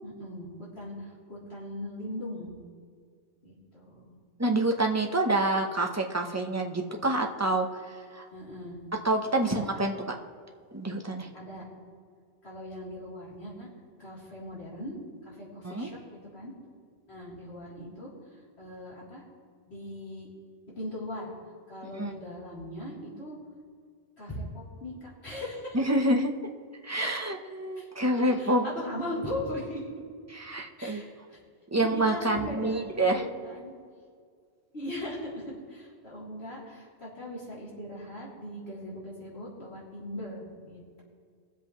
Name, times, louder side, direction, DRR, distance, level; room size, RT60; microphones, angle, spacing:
voice 1, 0.0-2.6 3.4-4.2 8.3-8.8 9.4-9.7 11.3-11.7 12.4-13.7 14.0-16.0 16.3-16.5 17.1-19.2 19.7-20.3 20.7-21.3 21.7-23.4 24.2-25.8 27.8-27.9 28.2-29.9 30.8-31.4 31.7-33.7 34.7-41.0, left 1 dB, 75° left, -7 dB, 3.7 m, -39 dB
voice 2, 4.4-8.2 9.0-10.0 10.7-11.3 15.6-15.9 21.9-22.1 25.7-26.3 26.8-28.7 30.3-31.0 31.7-33.2, right 1 dB, 15° right, 2 dB, 0.9 m, -27 dB
22.0 x 7.9 x 3.2 m, 2.1 s
omnidirectional pair, 1.1 m